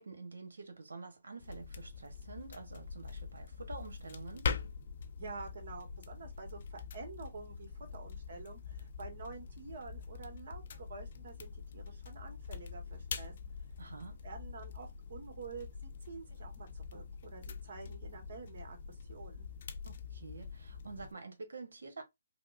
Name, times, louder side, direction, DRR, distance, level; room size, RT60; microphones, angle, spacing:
voice 1, 0.0-4.5 13.8-14.2 19.9-22.0, right 3 dB, 85° right, 1.0 m, -48 dB
sound 1, 1.4-21.1, left 6 dB, 50° left, 0.4 m, -44 dB
voice 2, 5.2-13.3 14.2-19.5, right 4 dB, 60° right, 1.2 m, -48 dB
3.4 x 2.1 x 2.5 m
hypercardioid pair, 155°, 0 cm